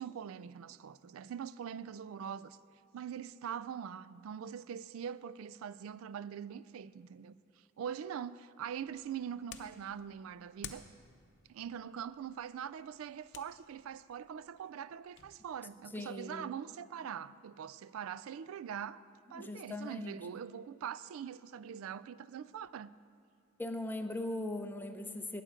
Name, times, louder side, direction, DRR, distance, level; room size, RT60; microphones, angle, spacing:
voice 1, 0.0-2.6 2.9-10.9 11.5-19.0 19.3-22.9, right 8 dB, 75° right, 0.3 m, -43 dB
sound 1, 8.6-15.3, left 8 dB, 60° left, 0.7 m, -55 dB
voice 2, 15.9-16.5 19.3-20.2 23.6-25.4, left 1 dB, 10° left, 0.6 m, -39 dB
19.5 x 7.6 x 5.0 m
head